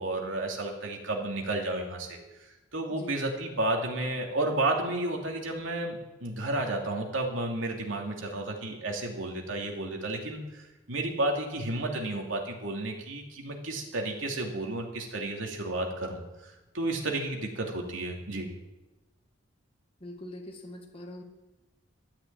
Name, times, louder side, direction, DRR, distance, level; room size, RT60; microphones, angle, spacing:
voice 1, 0.0-18.5, right 2 dB, 85° right, 1 dB, 2.7 m, -32 dB
voice 2, 2.9-3.2 20.0-21.2, left 1 dB, 30° left, 1 dB, 1.8 m, -43 dB
13.5 x 8.9 x 8.7 m, 1.1 s
head